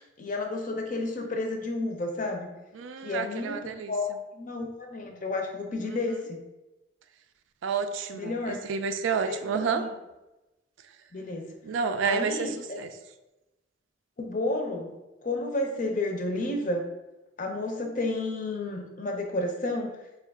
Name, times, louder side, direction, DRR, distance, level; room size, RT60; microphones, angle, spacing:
voice 1, 0.0-2.5 3.0-3.6 3.9-6.4 8.1-8.6 9.3-9.9 11.1-11.5 12.0-12.5 14.2-14.9 15.2-16.8 17.4-19.9, left 2 dB, 40° left, 3 dB, 0.6 m, -31 dB
voice 2, 2.7-3.9 5.9-6.0 7.6-9.8 11.6-12.5 12.7-12.9, right 5 dB, 80° right, 8 dB, 0.3 m, -29 dB
4.5 x 2.4 x 3.4 m, 1.0 s
head